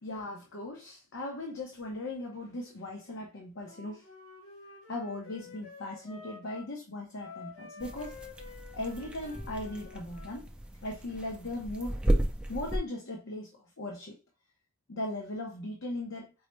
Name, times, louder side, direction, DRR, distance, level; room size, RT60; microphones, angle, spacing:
voice 1, 0.0-4.0 4.9-8.2 8.7-10.5 10.8-12.0 12.5-14.2 14.9-16.3, left 2 dB, 60° left, 0.7 m, -38 dB
Wind instrument woodwind instrument, 3.6-6.7 7.2-10.4, left 4 dB, 85° left, 1.7 m, -50 dB
sound 1, 7.8-12.8, right 1 dB, 5° right, 0.4 m, -34 dB
4.7 x 2.0 x 3.1 m
head